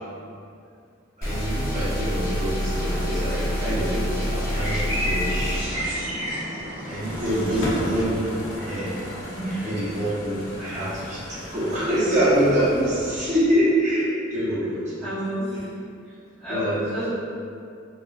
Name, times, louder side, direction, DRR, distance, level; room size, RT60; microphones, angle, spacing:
sound 1, 1.2-5.6, equal, 45° left, 0.8 m, -27 dB
voice 1, 1.2-5.9 6.9-8.3 8.5-8.9 9.6-15.1 15.5-15.6 16.5-16.8, right 1 dB, 35° right, -10 dB, 0.6 m, -25 dB
sound 2, 2.7-8.0, equal, 70° right, 0.8 m, -31 dB
sound 3, 6.6-13.6, left 1 dB, 75° left, 0.5 m, -35 dB
voice 2, 7.3-7.7 9.3-9.7 15.0-15.7 16.4-17.1, equal, 5° left, -17 dB, 0.6 m, -30 dB
3.0 x 2.2 x 2.2 m, 2.4 s
head